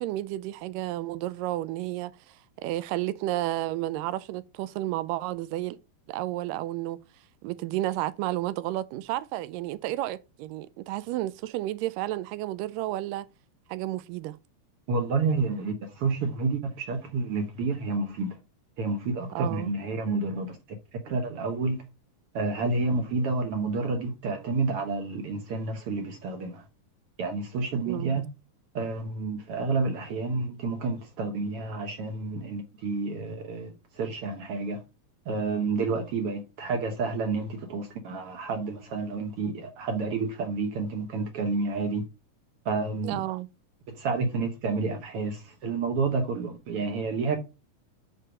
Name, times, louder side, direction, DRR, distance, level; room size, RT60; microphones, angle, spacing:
voice 1, 0.0-5.8 6.1-7.0 7.4-13.3 13.7-14.4 19.4-19.7 27.9-28.2 43.0-43.5, right 15 dB, 85° right, 2.2 m, -32 dB
voice 2, 14.9-18.4 18.8-20.6 21.0-21.8 22.3-26.6 27.2-28.2 28.7-34.8 35.3-42.0 42.6-43.2 43.9-47.4, right 3 dB, 65° right, 1.4 m, -29 dB
6.4 x 4.6 x 4.9 m
omnidirectional pair, 3.8 m